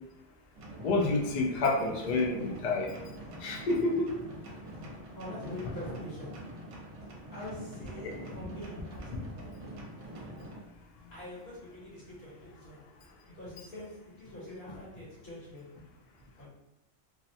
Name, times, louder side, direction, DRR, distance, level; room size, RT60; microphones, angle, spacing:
sound 1, 0.5-10.6, right 1 dB, 75° right, 0.9 m, -45 dB
voice 1, 0.8-2.9 3.4-4.1, left 3 dB, 80° left, -1 dB, 0.4 m, -28 dB
voice 2, 5.1-6.5 7.3-9.6 11.1-12.9 13.3-15.8 16.4-16.5, left 1 dB, 55° left, -8 dB, 1.2 m, -44 dB
2.6 x 2.0 x 2.7 m, 0.92 s
omnidirectional pair, 1.3 m